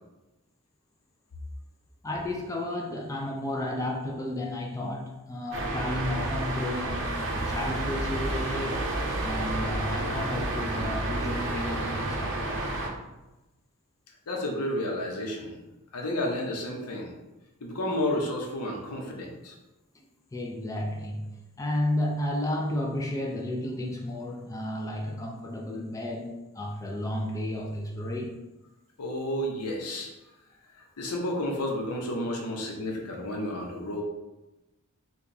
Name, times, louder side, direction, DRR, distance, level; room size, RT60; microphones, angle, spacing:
voice 1, 2.0-8.8 9.2-12.4 19.9-20.0 20.3-21.3 21.6-28.4, left 1 dB, 15° left, 0 dB, 0.3 m, -32 dB
sound 1, 5.5-12.9, right 2 dB, 55° right, 0.6 m, -30 dB
voice 2, 14.3-15.6 15.9-17.1 17.6-19.5 29.0-30.1 30.8-34.0, left 1 dB, 90° left, 0 dB, 0.8 m, -31 dB
4.7 x 2.3 x 2.6 m, 1.0 s
head